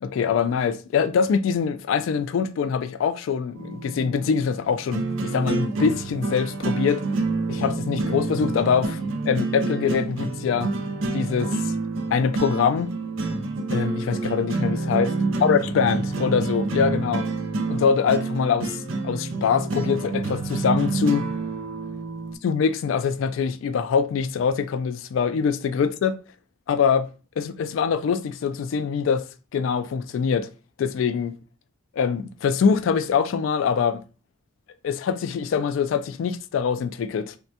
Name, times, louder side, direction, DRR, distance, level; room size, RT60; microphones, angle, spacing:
voice 1, 0.0-7.0 7.5-8.9 9.3-10.7 11.1-11.7 12.1-12.9 13.7-15.1 15.4-17.3 17.7-21.3 22.4-26.2 26.7-27.1 27.4-29.3 29.5-30.5 30.8-31.4 32.0-34.0 34.8-37.3, left 6 dB, 85° left, 0.3 m, -23 dB
sound 1, 3.5-22.3, right 3 dB, 90° right, 0.5 m, -28 dB
3.3 x 2.1 x 2.7 m
head